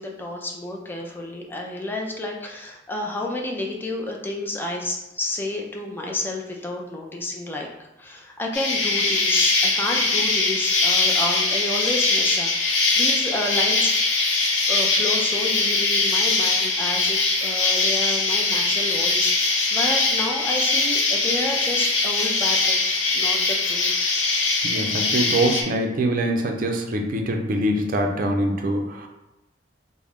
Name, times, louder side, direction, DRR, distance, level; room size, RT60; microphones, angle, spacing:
voice 1, 0.0-7.7 8.0-14.0 14.7-23.9, left 2 dB, 10° left, 0 dB, 0.4 m, -30 dB
Insect, 8.5-25.6, left 3 dB, 85° left, 0.7 m, -22 dB
voice 2, 24.6-29.1, right 1 dB, 50° right, 3 dB, 0.5 m, -24 dB
3.5 x 2.1 x 3.5 m, 0.99 s
head